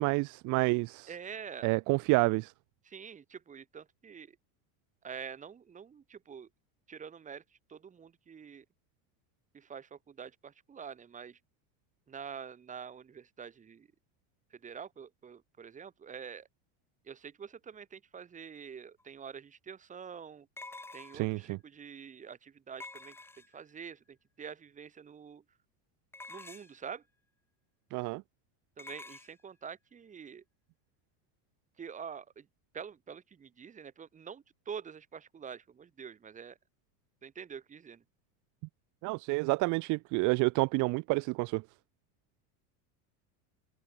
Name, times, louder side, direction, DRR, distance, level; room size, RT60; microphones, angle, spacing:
voice 1, 0.0-1.1 1.6-2.5 21.1-21.6 27.9-28.2 39.0-41.6, right 26 dB, 40° right, 1.1 m, -29 dB
voice 2, 1.1-1.7 2.8-4.4 5.0-6.5 6.9-7.4 7.7-8.6 9.5-11.4 12.1-13.9 14.5-16.5 17.0-20.5 20.9-23.2 23.5-25.4 26.3-27.0 28.8-30.4 31.8-32.5 32.7-36.6 37.2-38.0, right 7 dB, 15° right, 3.1 m, -46 dB
sound 1, 19.0-19.1 20.6-21.4 22.8-23.7 26.1-26.9 28.8-29.3, left 2 dB, 5° left, 1.3 m, -48 dB
cardioid pair, 170°, 47 cm